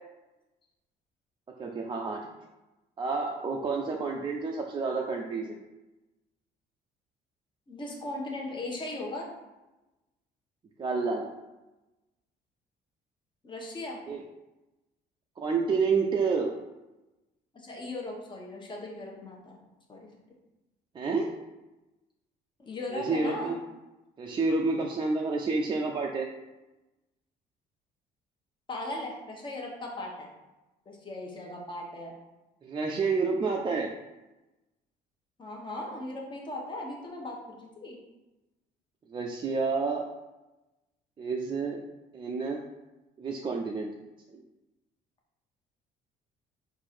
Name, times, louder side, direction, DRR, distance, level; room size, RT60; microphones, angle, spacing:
voice 1, 1.6-2.3 3.0-5.6 10.8-11.3 14.1-14.3 15.4-16.5 20.9-21.4 22.9-23.6 24.2-26.3 32.6-33.9 39.1-40.1 41.2-41.8 42.1-42.6 43.2-43.9 44.3-44.4, right 4 dB, 30° right, 0 dB, 0.4 m, -29 dB
voice 2, 7.7-9.3 13.4-14.0 17.5-19.6 19.9-20.1 22.6-23.6 28.7-30.3 30.9-32.1 35.4-38.0, left 2 dB, 30° left, -1 dB, 1.2 m, -38 dB
4.5 x 2.6 x 4.3 m, 1.0 s
cardioid pair, 110°, 17 cm